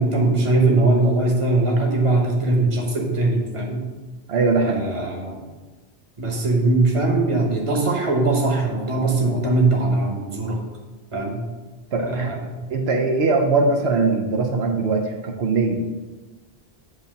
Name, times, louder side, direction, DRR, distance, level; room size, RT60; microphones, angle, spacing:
voice 1, 0.0-3.8 4.6-5.4 6.2-10.6 11.1-11.4 11.9-12.6, right 2 dB, 30° right, 0 dB, 1.1 m, -21 dB
voice 2, 4.3-4.9 11.9-12.3 12.7-15.8, right 3 dB, 80° right, 2 dB, 0.9 m, -21 dB
8.0 x 2.8 x 5.3 m, 1.2 s
omnidirectional pair, 1.1 m